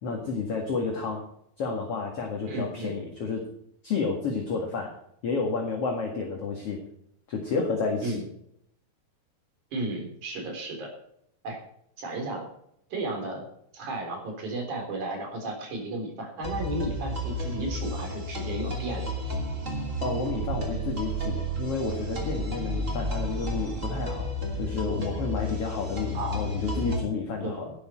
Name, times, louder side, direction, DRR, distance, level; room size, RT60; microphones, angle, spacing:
voice 1, 0.0-1.2 1.6-3.4 3.8-4.9 5.2-6.8 7.3-8.2 20.0-24.3 24.6-27.7, left 4 dB, 45° left, 1 dB, 2.3 m, -30 dB
voice 2, 2.5-3.0 8.0-8.3 9.7-10.9 11.4-11.6 12.0-12.5 12.9-13.5 13.7-19.2 26.1-26.4 27.4-27.6, right 2 dB, 50° right, 3 dB, 4.9 m, -33 dB
sound 1, 16.4-27.0, equal, 20° right, 2.5 m, -32 dB
11.5 x 11.5 x 4.5 m, 0.72 s
omnidirectional pair, 4.6 m